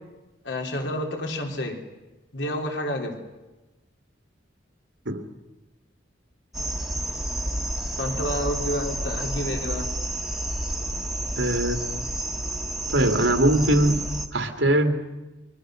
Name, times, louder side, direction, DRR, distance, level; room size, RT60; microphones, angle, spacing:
voice 1, 0.4-1.8 2.3-3.2 8.0-9.9, left 1 dB, 75° left, 2 dB, 3.6 m, -29 dB
sound 1, 6.5-14.3, right 1 dB, ahead, 1.5 m, -30 dB
voice 2, 11.4-11.9 12.9-14.0 14.3-15.0, right 1 dB, 80° right, 5 dB, 2.7 m, -21 dB
29.5 x 23.5 x 6.4 m, 1.1 s
head